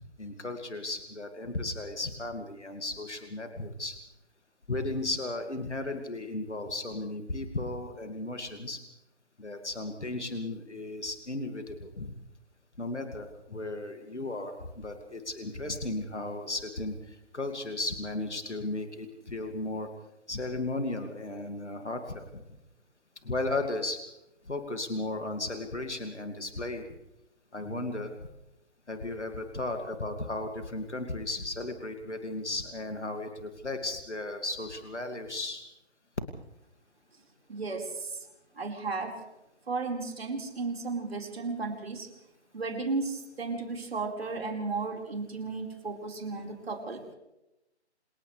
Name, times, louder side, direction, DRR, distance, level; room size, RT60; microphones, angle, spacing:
voice 1, 0.2-4.0 4.7-8.8 9.4-12.1 12.8-19.9 20.3-22.4 23.2-24.0 24.5-26.8 27.5-28.3 28.9-35.6, left 2 dB, 80° left, 5 dB, 2.5 m, -35 dB
voice 2, 37.5-38.3 38.6-39.2 39.7-42.1 42.5-47.0, right 4 dB, 60° right, 2 dB, 5.0 m, -34 dB
28.5 x 28.0 x 3.4 m, 0.90 s
figure-of-eight pair, 140°, 34 cm